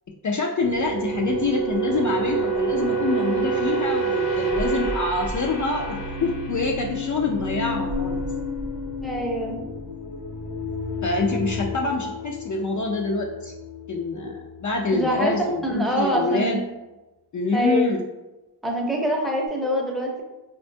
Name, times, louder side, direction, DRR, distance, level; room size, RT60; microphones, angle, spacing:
voice 1, 0.2-8.2 11.0-13.5 13.9-16.6 17.3-18.0, left 3 dB, 45° left, 0 dB, 0.4 m, -26 dB
sound 1, 0.6-15.2 15.5-15.8, right 2 dB, 65° left, 0.8 m, -29 dB
voice 2, 9.0-9.6 14.9-16.6 17.5-17.9 18.6-20.2, equal, ahead, -1 dB, 0.6 m, -25 dB
4.2 x 2.2 x 2.6 m, 1.1 s
wide cardioid pair, 60°, 41 cm